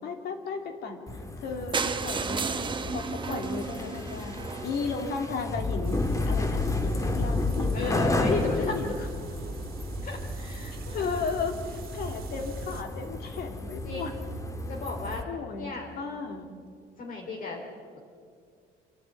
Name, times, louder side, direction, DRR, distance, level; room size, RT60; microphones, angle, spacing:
voice 1, 0.0-7.9 8.6-9.1 10.9-14.1 15.3-16.6, left 4 dB, 70° left, 4 dB, 2.8 m, -35 dB
sound 1, 1.1-15.2, left 2 dB, 20° left, 1.7 m, -32 dB
sound 2, 1.7-5.6 6.3-6.4 6.6-6.7 7.0-7.1 7.3-7.4, right 5 dB, 30° right, 1.2 m, -33 dB
sound 3, 5.8-12.8, right 5 dB, 60° right, 2.0 m, -41 dB
voice 2, 7.7-8.8 10.0-11.3 13.8-14.1 14.7-15.3 15.5-15.9 17.0-17.6, left 4 dB, 50° left, 0 dB, 3.5 m, -33 dB
27.5 x 11.5 x 9.2 m, 2.2 s
cardioid pair, 110°, 17 cm